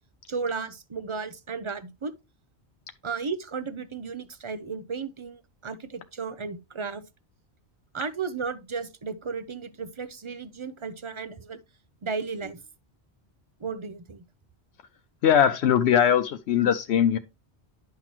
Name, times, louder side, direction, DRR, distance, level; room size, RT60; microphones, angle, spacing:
voice 1, 0.3-2.1 3.0-7.0 7.9-11.6 12.0-12.6 13.6-14.2, right 5 dB, 35° right, 0.6 m, -34 dB
voice 2, 15.2-17.2, left 9 dB, 80° left, 0.9 m, -21 dB
10.5 x 5.8 x 3.0 m
omnidirectional pair, 1.1 m